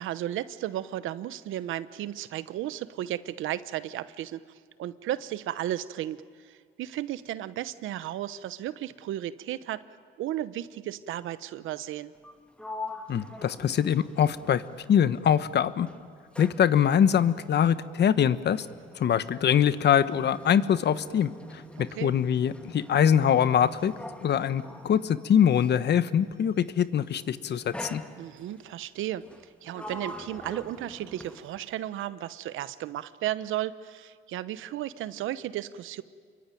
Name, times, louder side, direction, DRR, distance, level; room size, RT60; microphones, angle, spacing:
voice 1, 0.0-4.4 4.8-6.2 6.4-9.8 10.2-12.1 21.8-22.2 28.2-29.2 29.6-36.0, right 13 dB, 85° right, 15 dB, 0.9 m, -34 dB
Sliding door, 12.1-15.4 15.7-25.9 26.8-27.1 27.7-28.6 29.2-31.8, left 1 dB, 5° left, 2.0 m, -44 dB
voice 2, 13.1-14.6 14.9-15.9 16.4-18.6 19.0-21.3 21.8-23.9 24.2-28.0, left 9 dB, 60° left, 14 dB, 1.1 m, -23 dB
27.5 x 23.0 x 9.2 m, 2.1 s
cardioid pair, 90°, 20 cm